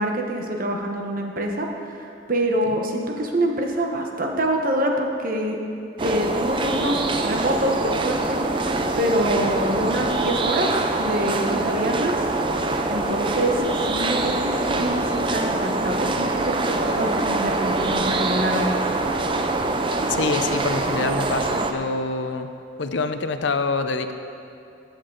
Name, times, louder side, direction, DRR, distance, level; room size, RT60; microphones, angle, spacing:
voice 1, 0.0-5.6 6.0-12.2 12.9-18.7, right 1 dB, 50° right, 2 dB, 1.1 m, -26 dB
sound 1, 6.0-21.7, right 2 dB, 25° right, 0.6 m, -24 dB
voice 2, 20.1-22.5 22.8-24.1, left 3 dB, 70° left, 8 dB, 0.6 m, -26 dB
15.0 x 8.3 x 4.0 m, 2.8 s
head